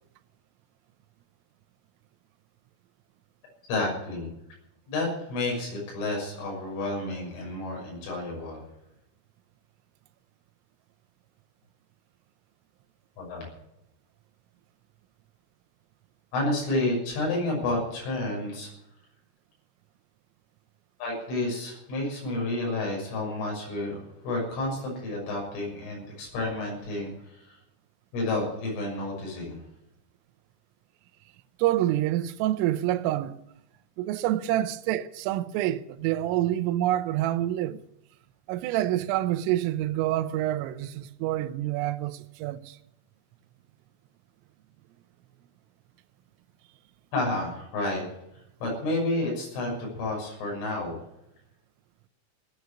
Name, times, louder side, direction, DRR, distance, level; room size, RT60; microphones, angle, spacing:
voice 1, 3.7-4.3 4.9-8.6 13.2-13.5 16.3-18.7 21.0-27.6 28.1-29.6 47.1-48.0 48.6-51.0, left 2 dB, 75° left, 8.9 m, -30 dB
voice 2, 31.6-33.3 34.0-37.8 38.5-42.6, right 14 dB, 85° right, 3.4 m, -27 dB
16.5 x 9.4 x 8.3 m
omnidirectional pair, 5.8 m